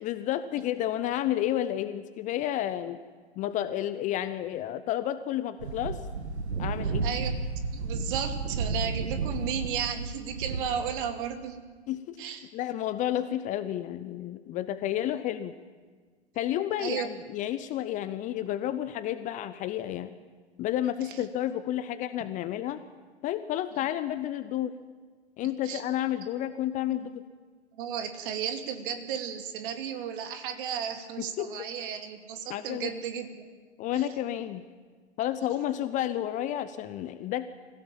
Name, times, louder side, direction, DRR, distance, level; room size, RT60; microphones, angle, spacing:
voice 1, 0.0-3.0 3.4-6.0 6.6-7.1 11.9-12.2 12.5-15.5 16.3-20.1 20.6-22.8 23.2-24.7 25.4-27.2 31.2-31.5 32.5-32.9 33.8-34.6 35.2-37.5, left 12 dB, 20° left, 12 dB, 0.7 m, -31 dB
sound 1, 5.6-10.9, right 4 dB, 70° right, 2.2 m, -32 dB
voice 2, 6.8-7.3 7.7-11.6 12.2-12.5 15.1-15.2 16.8-17.1 21.0-21.2 25.6-25.8 26.9-27.1 27.8-33.4 33.9-34.1, right 8 dB, 50° right, 6 dB, 2.5 m, -34 dB
25.0 x 16.5 x 7.4 m, 1.5 s
figure-of-eight pair, 110°, 35 cm